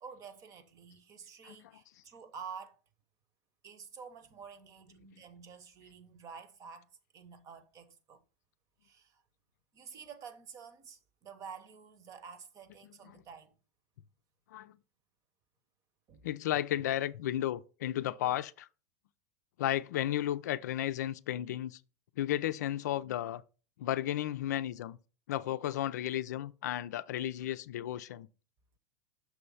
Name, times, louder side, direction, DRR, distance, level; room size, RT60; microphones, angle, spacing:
voice 1, 0.0-2.8 3.6-8.2 8.8-9.2 9.7-13.5 16.1-16.3, right 6 dB, 40° right, 1.0 m, -49 dB
voice 2, 16.2-18.7 19.6-21.8 22.2-23.4 23.8-25.0 25.3-28.3, left 12 dB, 75° left, 0.4 m, -33 dB
6.2 x 3.2 x 5.4 m
hypercardioid pair, 110°, 9 cm